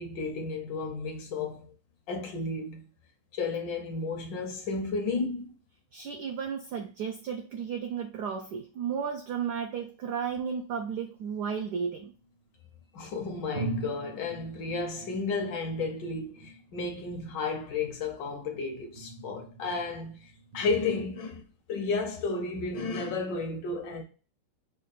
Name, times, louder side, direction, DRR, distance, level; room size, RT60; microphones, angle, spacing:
voice 1, 0.0-1.7 2.1-2.8 3.3-5.5 12.9-21.4 21.7-24.0, left 3 dB, 70° left, 1.2 m, -33 dB
voice 2, 5.9-12.1, right 7 dB, 85° right, 0.9 m, -33 dB
sound 1, 11.2-12.5 13.1-13.2 13.5-21.1, right 2 dB, 65° right, 1.5 m, -43 dB
5.3 x 2.2 x 3.9 m
omnidirectional pair, 2.4 m